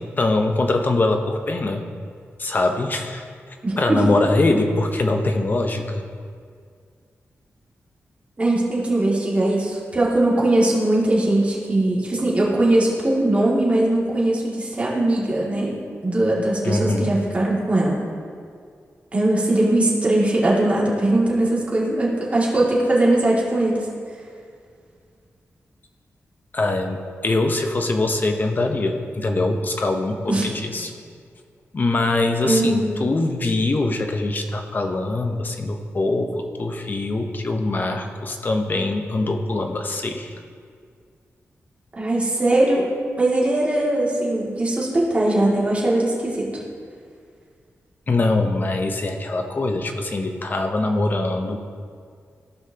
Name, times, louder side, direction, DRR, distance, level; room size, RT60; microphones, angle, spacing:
voice 1, 0.2-1.8 2.4-3.2 3.8-6.0 16.6-17.1 26.5-30.9 31.7-36.3 36.6-40.3 48.1-51.6, left 2 dB, 40° left, 5 dB, 0.8 m, -23 dB
voice 2, 3.6-4.0 8.4-18.0 19.1-23.8 30.3-30.5 32.4-32.9 42.0-42.9 43.2-46.5, right 1 dB, 25° right, -5 dB, 2.4 m, -20 dB
16.0 x 5.7 x 2.9 m, 2.1 s
wide cardioid pair, 110°, 5 cm